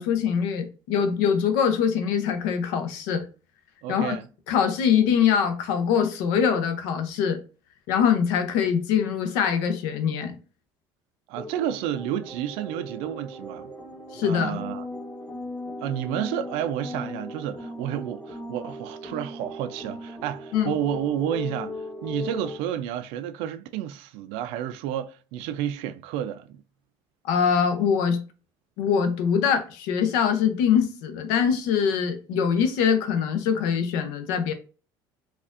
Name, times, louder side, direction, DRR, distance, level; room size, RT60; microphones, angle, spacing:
voice 1, 0.0-3.3 3.9-4.1 4.5-7.4 7.9-10.3 14.1-14.6 20.5-20.7 27.3-28.2 28.8-34.5, left 7 dB, 85° left, 0.7 m, -23 dB
voice 2, 3.8-4.3 11.3-13.7 14.2-14.9 15.8-26.6, right 11 dB, 80° right, 0.4 m, -31 dB
sound 1, 11.3-22.6, left 1 dB, 20° left, 0.9 m, -37 dB
4.2 x 2.4 x 2.4 m
supercardioid pair, 100°, 10 cm